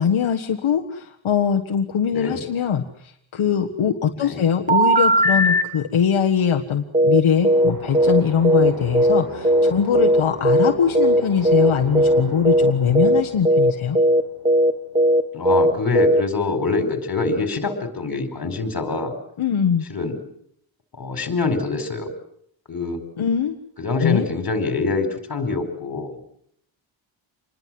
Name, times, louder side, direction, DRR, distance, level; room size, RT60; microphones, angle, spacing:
voice 1, 0.0-14.0 19.4-19.8 23.2-23.6 24.0-24.2, left 7 dB, 75° left, 3 dB, 1.7 m, -22 dB
voice 2, 2.1-2.4 4.2-4.4 15.3-19.1 19.9-20.2 20.9-22.1 22.7-23.0 23.8-26.2, left 3 dB, 45° left, 8 dB, 4.7 m, -25 dB
sound 1, 4.7-5.6 6.9-10.7 11.0-11.2 11.5-11.7 12.0-12.2 12.5-12.7 13.0-16.2, equal, 15° right, 1.5 m, -16 dB
sound 2, 7.3-15.0, right 3 dB, 45° right, 5.3 m, -36 dB
27.0 x 21.0 x 7.7 m, 0.68 s
wide cardioid pair, 155°, 48 cm